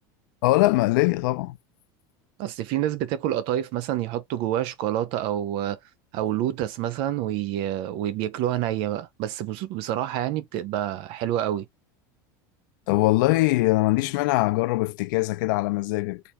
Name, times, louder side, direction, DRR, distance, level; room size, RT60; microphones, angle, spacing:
voice 1, 0.4-1.6 12.9-16.2, left 20 dB, 75° left, 0.4 m, -22 dB
voice 2, 2.4-5.8 6.1-11.7, right 12 dB, 55° right, 0.6 m, -27 dB
3.3 x 2.4 x 2.9 m
supercardioid pair, 140°, 11 cm